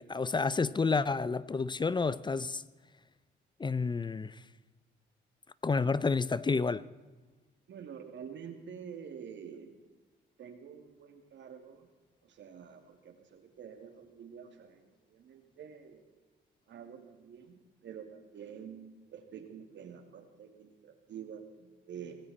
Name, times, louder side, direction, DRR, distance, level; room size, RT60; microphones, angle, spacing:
voice 1, 0.0-2.6 3.6-4.4 5.6-6.8, left 4 dB, 25° left, 0.5 m, -30 dB
voice 2, 7.7-9.8 10.4-11.9 12.2-16.2 16.7-22.2, right 7 dB, 65° right, 2.5 m, -48 dB
18.5 x 16.5 x 4.3 m
cardioid pair, 90°, 20 cm